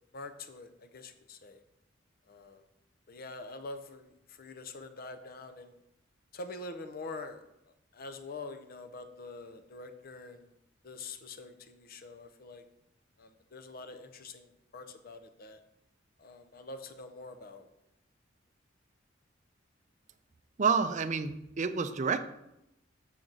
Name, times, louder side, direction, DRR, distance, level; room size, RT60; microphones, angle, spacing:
voice 1, 0.1-1.6 2.3-2.6 3.1-5.8 6.3-7.4 7.9-10.5 10.8-12.6 13.2-15.6 16.2-17.7, left 3 dB, 50° left, 8 dB, 0.6 m, -45 dB
voice 2, 20.6-22.2, right 5 dB, 40° right, 10 dB, 0.5 m, -29 dB
7.5 x 5.9 x 3.9 m, 0.85 s
head